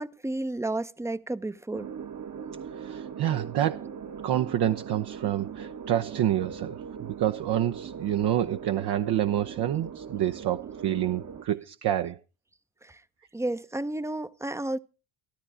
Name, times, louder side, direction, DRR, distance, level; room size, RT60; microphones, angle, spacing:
voice 1, 0.0-1.9 12.8-13.0 13.3-14.8, right 2 dB, 5° right, 0.7 m, -32 dB
sound 1, 1.7-11.5, right 7 dB, 40° right, 1.2 m, -40 dB
voice 2, 2.8-3.9 4.2-12.2, right 11 dB, 55° right, 0.9 m, -28 dB
13.5 x 13.0 x 4.9 m
supercardioid pair, 70°, 47 cm